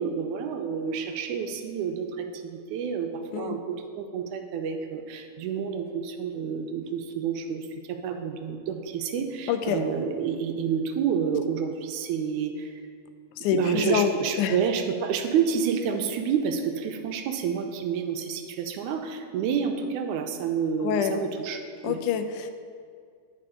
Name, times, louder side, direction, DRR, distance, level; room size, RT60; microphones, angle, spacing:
voice 1, 0.0-12.8 13.5-22.0, right 7 dB, 85° right, 5 dB, 2.1 m, -29 dB
voice 2, 9.5-9.8 13.4-14.1 14.4-14.5 20.8-21.2 21.8-22.5, left 9 dB, 90° left, 8 dB, 2.1 m, -26 dB
11.0 x 4.7 x 5.0 m, 2.2 s
omnidirectional pair, 3.5 m